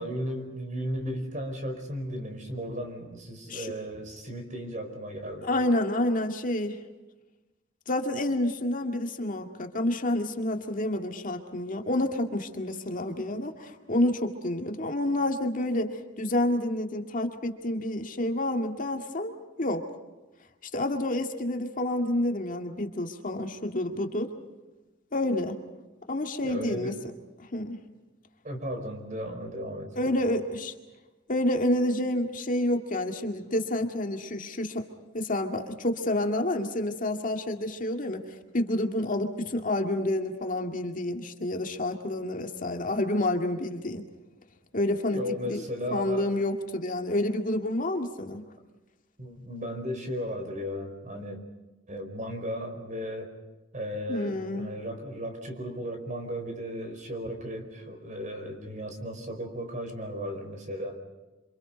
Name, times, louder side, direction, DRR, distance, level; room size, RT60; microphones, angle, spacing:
voice 1, 0.0-5.5 26.4-27.0 28.4-30.3 45.1-46.3 49.2-51.4 51.9-53.3 53.7-61.0, equal, 40° right, 5 dB, 4.9 m, -35 dB
voice 2, 5.4-6.8 7.9-19.3 19.6-19.8 20.6-24.3 25.1-25.6 26.1-27.0 27.4-27.8 30.0-30.7 31.3-34.9 35.1-38.2 38.5-44.0 44.7-45.2 45.4-45.6 45.9-48.4 54.1-54.7, left 1 dB, 45° left, 4 dB, 2.1 m, -29 dB
28.0 x 26.0 x 5.2 m, 1.1 s
head